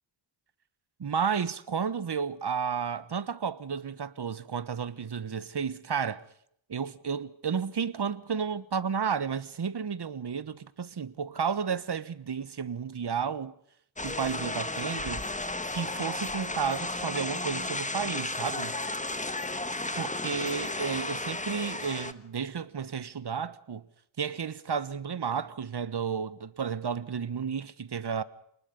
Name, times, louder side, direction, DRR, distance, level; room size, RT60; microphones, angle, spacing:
voice 1, 1.0-6.2 6.7-13.5 14.0-15.3 15.7-18.8 20.0-23.9 24.2-28.2, right 6 dB, 55° right, 1.3 m, -32 dB
sound 1, 14.0-22.1, left 2 dB, 15° left, 1.4 m, -33 dB
29.0 x 20.0 x 5.4 m
cardioid pair, 60°, 49 cm